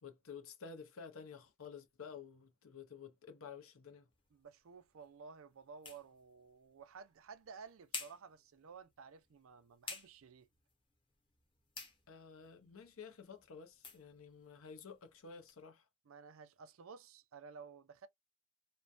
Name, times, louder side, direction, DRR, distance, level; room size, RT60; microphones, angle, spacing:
voice 1, 0.0-4.1 12.1-15.9, left 6 dB, 75° left, 0.7 m, -52 dB
sound 1, 4.1-15.6, left 4 dB, 25° left, 0.8 m, -54 dB
voice 2, 4.3-10.5 16.1-18.1, right 5 dB, 70° right, 0.5 m, -54 dB
3.0 x 2.2 x 2.4 m
head